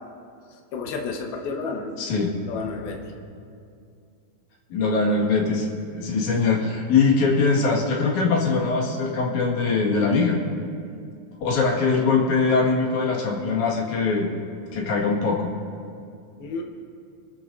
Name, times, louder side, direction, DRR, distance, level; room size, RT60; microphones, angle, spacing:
voice 1, 0.5-2.1 2.5-3.2 16.4-16.6, left 4 dB, 80° left, 1 dB, 3.0 m, -31 dB
voice 2, 2.0-2.3 4.7-10.4 11.4-14.3 14.7-15.5, left 4 dB, 55° left, -3 dB, 3.0 m, -22 dB
26.5 x 14.0 x 2.7 m, 2.4 s
omnidirectional pair, 4.4 m